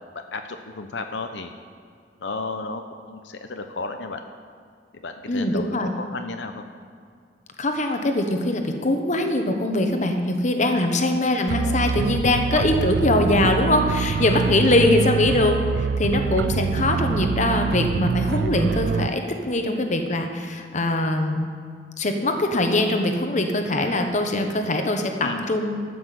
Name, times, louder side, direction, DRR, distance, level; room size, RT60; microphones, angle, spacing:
voice 1, 0.3-1.5 2.2-4.2 5.0-6.6 25.2-25.5, left 3 dB, 85° left, 6 dB, 0.8 m, -33 dB
voice 2, 5.3-5.9 7.6-21.5 22.0-25.8, left 1 dB, 45° left, 5 dB, 1.1 m, -22 dB
sound 1, 11.5-19.1, right 5 dB, 70° right, 0.3 m, -25 dB
12.5 x 6.0 x 7.6 m, 2.2 s
head